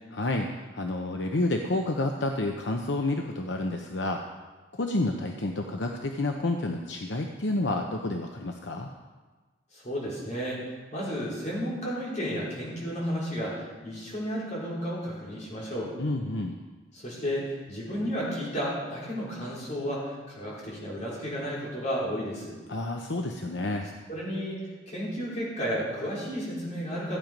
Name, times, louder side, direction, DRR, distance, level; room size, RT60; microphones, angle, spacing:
voice 1, 0.1-0.5 0.7-4.2 4.8-8.9 16.0-16.5 22.7-23.9, left 2 dB, 75° left, 3 dB, 0.8 m, -29 dB
voice 2, 9.7-15.9 16.9-22.6 24.1-24.6 24.9-27.2, equal, 40° left, -6 dB, 4.6 m, -32 dB
15.0 x 9.1 x 5.2 m, 1.3 s
head